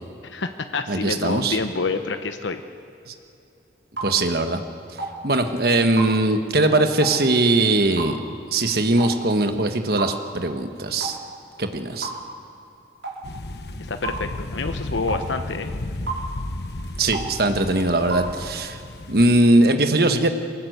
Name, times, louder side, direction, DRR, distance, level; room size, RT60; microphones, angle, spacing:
voice 1, 0.2-2.6 13.9-15.7, left 4 dB, 80° left, 8 dB, 0.9 m, -27 dB
voice 2, 0.9-1.6 3.1-3.2 4.0-4.6 5.2-8.2 8.5-11.2 11.6-12.1 17.0-18.8 19.1-20.3, right 2 dB, 55° right, 7 dB, 1.4 m, -20 dB
sound 1, 4.0-4.1 5.0-5.2 6.0-6.1 7.0-7.2 8.0-8.2 9.0-9.2 10.0-10.1 11.0-11.2 12.0-12.2 13.0-13.2 14.0-14.2 15.1-15.3 16.1-16.3 17.1-17.3 18.1-18.3, right 3 dB, 80° right, 4.7 m, -30 dB
sound 2, 13.2-19.4, left 1 dB, 60° left, 1.1 m, -33 dB
22.5 x 19.5 x 8.1 m, 2.8 s
head